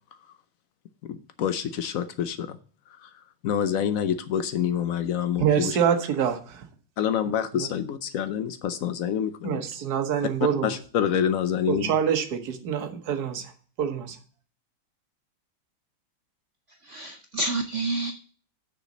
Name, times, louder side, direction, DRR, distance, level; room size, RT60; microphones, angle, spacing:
voice 1, 1.1-2.6 3.0-3.1 3.4-5.8 7.0-9.7 10.6-11.9, left 9 dB, 80° left, 0.7 m, -27 dB
voice 2, 5.4-6.6 7.5-7.7 9.4-10.7 11.7-13.5 13.8-14.2, right 8 dB, 55° right, 1.5 m, -26 dB
voice 3, 16.8-18.1, right 2 dB, 90° right, 0.6 m, -29 dB
6.7 x 5.1 x 7.1 m
omnidirectional pair, 2.2 m